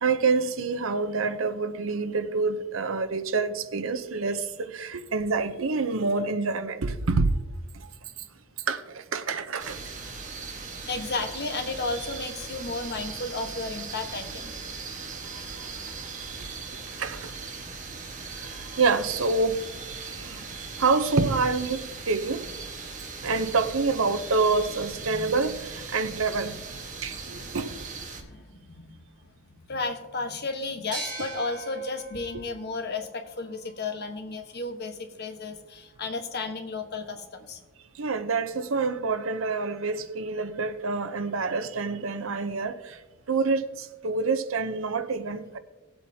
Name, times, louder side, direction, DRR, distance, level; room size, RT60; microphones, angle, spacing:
voice 1, 0.0-7.4 8.7-9.8 15.5-15.6 17.0-17.3 18.4-18.5 18.8-19.6 20.2-20.4 20.8-22.4 23.2-26.6 27.0-27.7 38.0-43.0 43.3-45.6, right 4 dB, 80° right, 0.7 m, -27 dB
sound 1, 9.6-28.2, right 4 dB, 40° right, 1.4 m, -39 dB
voice 2, 10.8-14.5 26.9-27.0 28.2-29.0 29.7-37.6, left 3 dB, 55° left, 1.3 m, -33 dB
sound 2, 30.9-34.3, right 2 dB, 20° right, 2.2 m, -41 dB
18.5 x 7.9 x 2.8 m
head